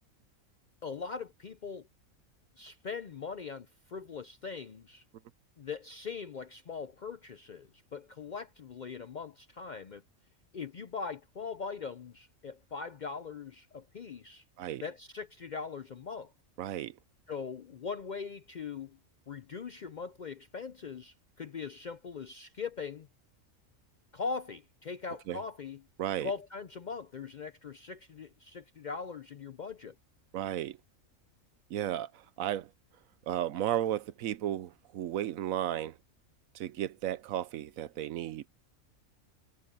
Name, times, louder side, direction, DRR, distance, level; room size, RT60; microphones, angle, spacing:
voice 1, 0.8-1.9 2.6-5.0 5.6-10.0 10.5-14.4 14.8-16.3 17.3-19.0 19.3-23.1 24.1-25.8 26.2-29.9, left 5 dB, 55° left, 0.5 m, -41 dB
voice 2, 16.6-17.0 25.3-25.4 26.0-26.3 30.3-30.8 31.7-32.7 33.3-36.0 36.5-38.5, right 12 dB, 80° right, 1.1 m, -34 dB
omnidirectional pair, 1.4 m